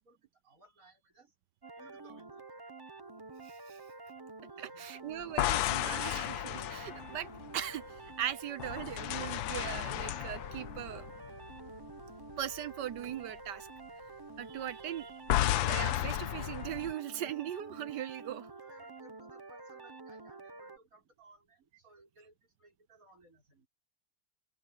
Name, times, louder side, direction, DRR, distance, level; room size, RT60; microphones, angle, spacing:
voice 1, 0.0-1.3 1.8-2.5 4.5-5.1 14.8-15.1 18.6-23.7, right 2 dB, 45° right, 6.5 m, -61 dB
sound 1, 1.6-20.8, right 3 dB, 25° right, 0.5 m, -49 dB
voice 2, 3.4-3.8 4.6-7.3 7.5-11.1 12.4-13.7 14.4-15.1 15.5-18.5, right 11 dB, 70° right, 1.4 m, -39 dB
sound 2, 5.2-8.1 8.6-12.0 12.3-12.6 15.3-16.9, left 14 dB, 90° left, 1.4 m, -33 dB
open air
omnidirectional pair, 2.0 m